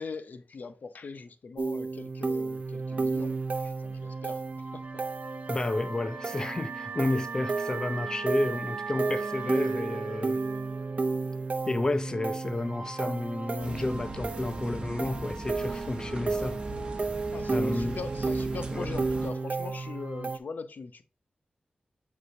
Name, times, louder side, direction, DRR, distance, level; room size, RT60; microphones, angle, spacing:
voice 1, 0.0-4.8 17.3-21.0, left 4 dB, 65° left, 0.7 m, -41 dB
sound 1, 1.6-20.4, right 3 dB, 50° right, 0.7 m, -33 dB
Wind instrument woodwind instrument, 4.8-11.8, right 5 dB, 70° right, 1.2 m, -41 dB
voice 2, 5.5-10.4 11.7-16.6 17.5-18.0 18.7-18.9, left 2 dB, 25° left, 0.5 m, -31 dB
sound 2, 13.6-19.3, right 1 dB, 35° right, 1.3 m, -39 dB
7.9 x 4.9 x 2.7 m
wide cardioid pair, 120°, 3 cm